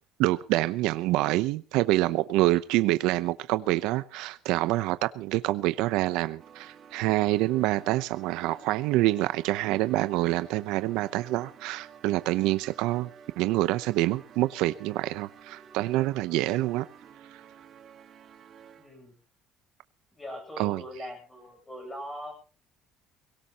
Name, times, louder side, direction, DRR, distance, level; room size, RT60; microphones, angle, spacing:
voice 1, 0.2-13.1 13.4-16.9 17.3-17.4 20.6-20.8, right 17 dB, 75° right, 0.7 m, -26 dB
sound 1, 6.4-19.1, right 7 dB, 35° right, 1.7 m, -52 dB
voice 2, 18.7-19.2 20.1-22.3, equal, 10° left, 7.9 m, -41 dB
23.5 x 17.5 x 3.0 m
cardioid pair, 180°, 0 cm